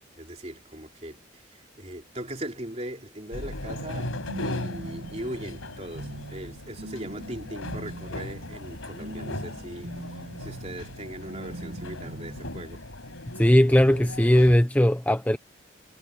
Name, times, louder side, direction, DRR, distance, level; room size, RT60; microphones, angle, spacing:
voice 1, 0.2-12.8, right 1 dB, 30° right, 3.7 m, -39 dB
sound 1, 3.3-14.6, left 1 dB, 90° left, 5.1 m, -38 dB
sound 2, 3.7-12.6, right 1 dB, 80° right, 1.7 m, -41 dB
voice 2, 13.4-15.4, left 1 dB, 10° left, 0.7 m, -19 dB
head